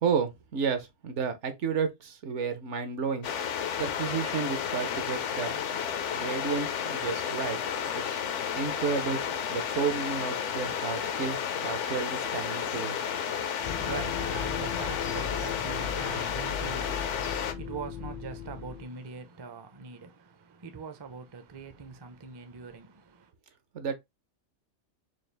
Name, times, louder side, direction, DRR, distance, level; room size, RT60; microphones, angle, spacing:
voice 1, 0.0-3.3 3.8-5.7 6.1-7.6 7.9-8.2 8.6-9.2 9.5-13.0 23.7-24.0, right 6 dB, 70° right, 1.1 m, -32 dB
sound 1, 3.2-17.5, left 8 dB, 70° left, 1.0 m, -32 dB
voice 2, 13.4-23.3, right 5 dB, 30° right, 0.4 m, -42 dB
sound 2, 13.6-18.8, left 8 dB, 55° left, 0.5 m, -38 dB
4.7 x 2.4 x 3.2 m
omnidirectional pair, 1.3 m